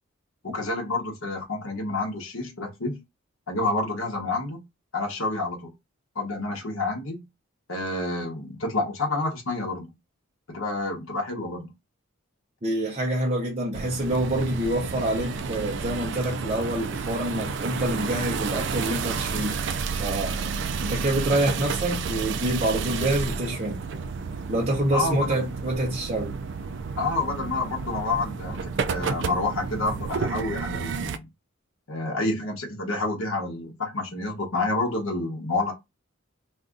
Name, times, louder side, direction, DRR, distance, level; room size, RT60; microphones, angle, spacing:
voice 1, 0.4-3.0 3.5-4.6 4.9-5.7 6.1-7.2 7.7-9.9 10.5-11.7 24.9-25.6 27.0-31.3 31.9-35.7, left 2 dB, 80° left, 0.9 m, -29 dB
voice 2, 12.6-19.6 20.0-20.5 20.8-23.8 24.5-26.3, right 1 dB, 30° right, 0.7 m, -26 dB
Exterior Prius In Stop Away w turn, 13.7-31.2, right 5 dB, 55° right, 0.3 m, -31 dB
2.6 x 2.4 x 3.6 m
head